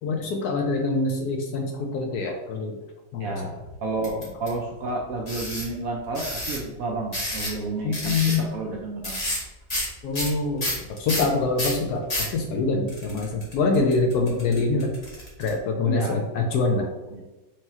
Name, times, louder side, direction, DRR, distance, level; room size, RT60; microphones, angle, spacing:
voice 1, 0.0-2.8 3.1-3.3 7.8-8.4 10.0-10.7 11.0-14.9 15.4-16.9, left 3 dB, 70° left, 2 dB, 1.0 m, -25 dB
voice 2, 3.2-9.2 13.7-13.8 15.9-16.3 17.1-17.2, right 3 dB, 70° right, 0 dB, 0.8 m, -31 dB
sound 1, 4.0-4.5 5.3-5.7 6.1-6.6 7.1-7.6 7.9-8.4 9.0-9.4 9.7-9.9 10.1-12.3 12.9-15.5, left 1 dB, 25° left, 0.9 m, -29 dB
4.7 x 2.9 x 2.8 m, 1.1 s
omnidirectional pair, 1.9 m